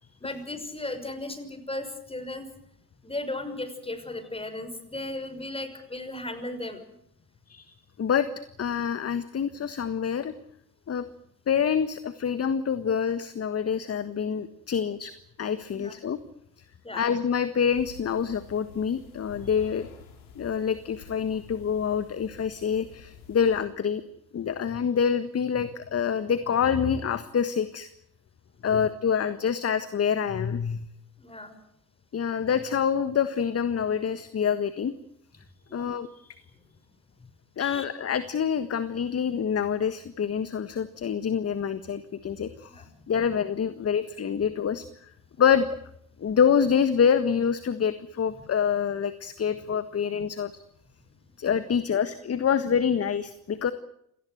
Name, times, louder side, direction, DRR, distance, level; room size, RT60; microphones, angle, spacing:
voice 1, 0.2-2.5 3.0-6.8 15.7-15.9 16.8-17.1 28.6-28.8 31.2-31.6 35.7-36.0 37.6-37.8 42.7-42.9, left 2 dB, 10° left, 9 dB, 6.0 m, -36 dB
voice 2, 7.5-8.3 8.6-10.3 10.9-11.1 11.5-15.1 15.4-16.2 16.9-19.9 20.3-24.0 24.3-27.9 28.6-30.9 32.1-34.9 35.7-36.4 37.6-45.1 45.4-45.7 46.2-50.5 51.4-53.7, left 7 dB, 30° left, 13 dB, 1.6 m, -26 dB
sound 1, 17.7-23.7, left 6 dB, 75° left, 4.5 m, -49 dB
27.0 x 18.5 x 8.0 m, 0.74 s
hypercardioid pair, 65°, 45 cm